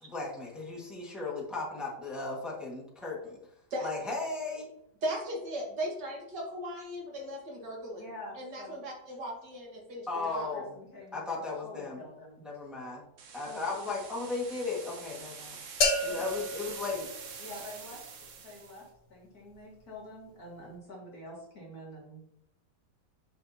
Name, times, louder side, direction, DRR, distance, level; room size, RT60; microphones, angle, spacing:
voice 1, 0.0-3.4 3.8-4.7 10.1-10.7 11.1-12.0 12.4-13.0 13.3-15.6 16.0-17.1, left 3 dB, ahead, -6 dB, 1.5 m, -36 dB
voice 2, 5.0-8.1 8.3-10.6, equal, 70° right, -1 dB, 2.3 m, -37 dB
voice 3, 8.0-8.8 10.1-11.3 11.6-12.4 13.5-13.6 16.1-16.2 17.4-18.0 18.4-22.3, left 1 dB, 55° left, -4 dB, 2.3 m, -47 dB
sound 1, 13.2-18.8, right 6 dB, 55° right, 1.0 m, -46 dB
sound 2, 15.8-17.8, left 2 dB, 85° left, 1.8 m, -31 dB
8.4 x 5.2 x 2.8 m, 0.79 s
omnidirectional pair, 1.9 m